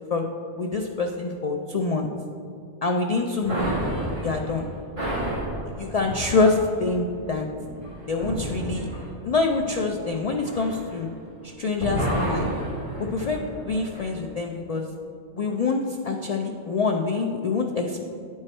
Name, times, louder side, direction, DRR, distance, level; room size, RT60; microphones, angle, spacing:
voice 1, 0.6-2.1 2.8-3.7 4.2-4.7 5.8-7.5 8.1-8.9 9.2-11.1 11.4-12.5 13.0-14.9 15.3-18.0, left 3 dB, 75° left, 2 dB, 0.3 m, -25 dB
sound 1, 3.4-11.4 11.7-14.1, right 1 dB, 25° right, 1.9 m, -31 dB
9.6 x 4.7 x 4.3 m, 2.5 s
omnidirectional pair, 1.2 m